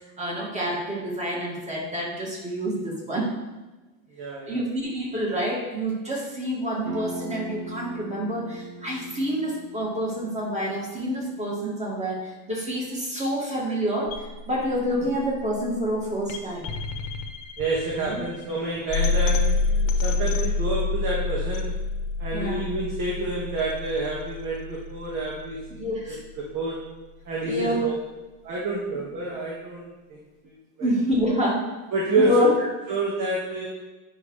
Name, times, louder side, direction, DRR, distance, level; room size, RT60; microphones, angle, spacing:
voice 1, 0.2-3.3 4.4-16.7 18.0-18.2 22.3-22.7 25.8-26.2 27.4-27.8 30.8-31.6 32.2-32.5, equal, 15° right, -3 dB, 2.2 m, -27 dB
voice 2, 4.2-4.6 17.6-21.7 22.2-25.9 26.4-26.9 27.3-27.9 28.4-30.9 31.9-32.5 32.9-33.7, right 2 dB, 50° right, -4 dB, 1.9 m, -28 dB
sound 1, 6.8-12.3, right 2 dB, 65° right, 1.9 m, -40 dB
sound 2, 14.1-26.1, left 4 dB, 50° left, 1.1 m, -28 dB
9.8 x 6.0 x 3.3 m, 1.1 s
supercardioid pair, 130°, 41 cm